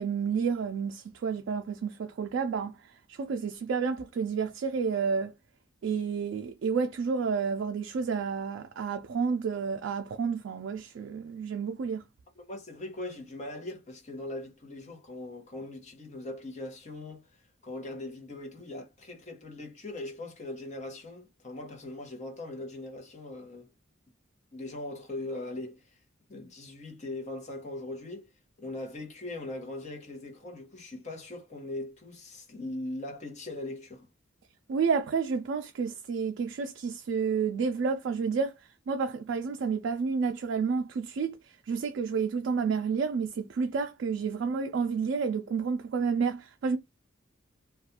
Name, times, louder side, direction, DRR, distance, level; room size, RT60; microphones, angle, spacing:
voice 1, 0.0-5.3 5.8-12.0 34.7-46.8, right 5 dB, 70° right, 0.3 m, -30 dB
voice 2, 12.4-17.3 17.6-23.7 24.5-26.0 26.3-28.3 28.6-34.1, left 2 dB, 40° left, 0.9 m, -40 dB
2.4 x 2.3 x 2.7 m
head